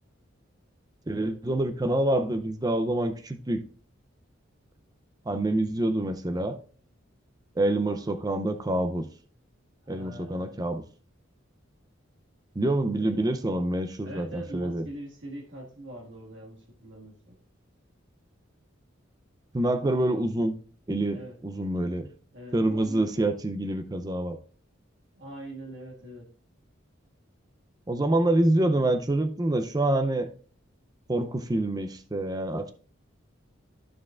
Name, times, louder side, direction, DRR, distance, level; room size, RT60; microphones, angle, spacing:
voice 1, 1.1-3.6 5.3-6.6 7.6-9.1 9.9-10.8 12.6-14.8 19.5-20.5 20.9-22.1 22.5-24.4 27.9-30.3 31.1-32.7, right 1 dB, 20° right, 0.5 m, -26 dB
voice 2, 9.8-10.6 12.9-13.1 14.0-17.4 21.1-21.4 22.3-23.1 25.2-26.3, right 1 dB, 65° right, 1.8 m, -42 dB
13.5 x 4.7 x 2.4 m
head